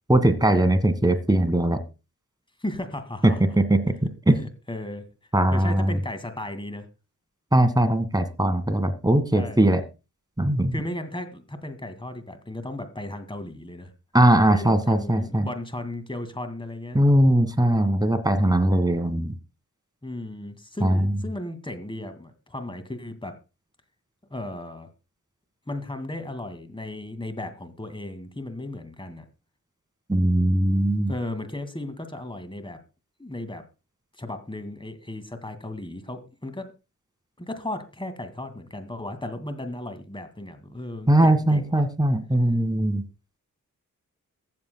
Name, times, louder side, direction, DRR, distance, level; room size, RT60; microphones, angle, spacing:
voice 1, 0.1-1.8 3.6-3.9 4.3-4.4 5.3-6.0 7.5-9.8 10.4-10.7 14.1-15.5 16.9-19.3 20.8-21.1 30.1-31.1 41.1-43.0, right 1 dB, 10° right, 9 dB, 1.7 m, -20 dB
voice 2, 2.6-3.4 4.4-5.1 5.5-6.9 9.3-9.8 10.7-13.9 14.5-17.0 20.0-23.4 24.3-24.9 25.7-29.2 31.1-32.8 33.2-33.6 34.2-36.7 37.4-41.9, left 1 dB, 15° left, 10 dB, 2.1 m, -35 dB
22.5 x 7.5 x 2.2 m, 0.29 s
cardioid pair, 55°, 35 cm